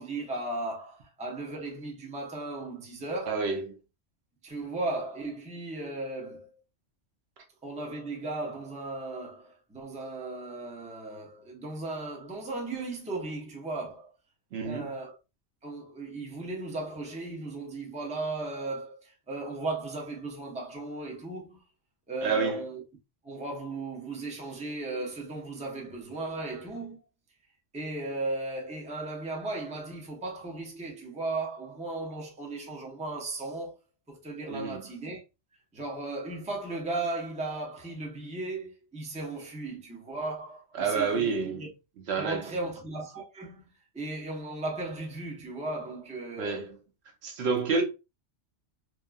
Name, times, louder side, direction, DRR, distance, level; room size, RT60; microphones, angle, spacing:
voice 1, 0.0-3.4 4.4-6.5 7.6-14.1 14.6-15.2 15.6-21.6 22.1-22.8 23.2-27.0 27.7-33.8 34.1-35.2 35.7-41.7 42.2-43.7 43.9-46.7, right 2 dB, 10° right, 0.5 m, -36 dB
voice 2, 3.3-3.8 14.5-14.9 22.2-22.6 34.5-34.8 40.8-41.6 42.1-42.5 46.4-46.8 47.2-47.8, right 5 dB, 65° right, 0.9 m, -29 dB
2.9 x 2.3 x 2.2 m
omnidirectional pair, 1.2 m